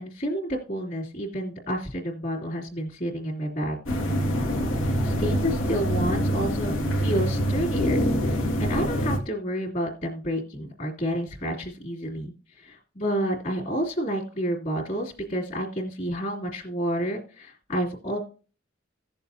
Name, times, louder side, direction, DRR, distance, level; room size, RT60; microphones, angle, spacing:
voice 1, 0.0-3.8 4.8-18.2, equal, 45° left, -6 dB, 2.6 m, -30 dB
sound 1, 3.9-9.2, equal, 90° left, 1.9 m, -25 dB
16.5 x 7.0 x 2.7 m, 0.36 s
head